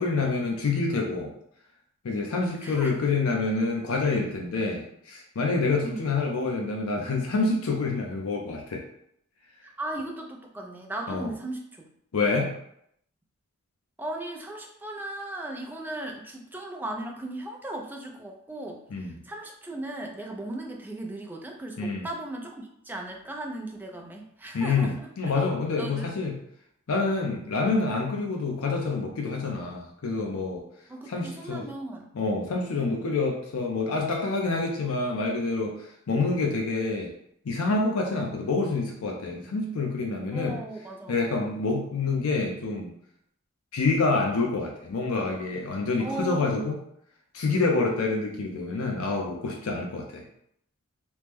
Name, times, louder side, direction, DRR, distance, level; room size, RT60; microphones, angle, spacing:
voice 1, 0.0-1.3 2.0-8.8 11.1-11.3 12.1-12.6 18.9-19.1 21.8-22.1 24.5-26.4 26.9-30.6 31.1-31.7 32.2-37.1 37.4-40.6 41.1-42.9 43.7-46.8 47.3-50.2, left 3 dB, 75° left, 0 dB, 0.5 m, -27 dB
voice 2, 2.6-3.0 5.8-6.1 9.6-11.9 14.0-25.3 25.8-26.1 27.5-27.8 30.9-32.1 32.7-33.1 40.3-41.3 46.0-46.8, right 1 dB, 10° right, 1 dB, 0.3 m, -37 dB
3.0 x 2.0 x 3.4 m, 0.72 s
head